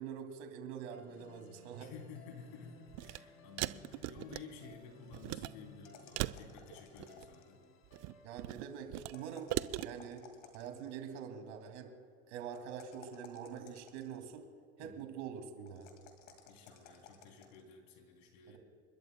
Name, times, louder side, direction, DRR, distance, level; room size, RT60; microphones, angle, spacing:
voice 1, 0.0-1.9 8.2-9.5 9.8-10.3 10.5-11.9 12.3-14.5 14.8-15.9 18.5-18.6, right 7 dB, 70° right, 5 dB, 2.4 m, -45 dB
sound 1, 0.9-11.2, left 4 dB, 35° left, 1.9 m, -60 dB
voice 2, 1.8-7.6 14.8-15.0 16.5-18.6, left 5 dB, 60° left, 3 dB, 3.1 m, -53 dB
sound 2, 2.9-3.2 3.6-4.8 5.1-5.5 6.2-7.3 7.8-9.1 9.5-9.9, right 19 dB, 45° right, 0.5 m, -39 dB
sound 3, 5.8-7.6 9.0-10.9 12.5-14.4 15.7-17.6, left 7 dB, 80° left, 2.2 m, -58 dB
29.5 x 12.5 x 2.2 m, 2.3 s
hypercardioid pair, 100°, 36 cm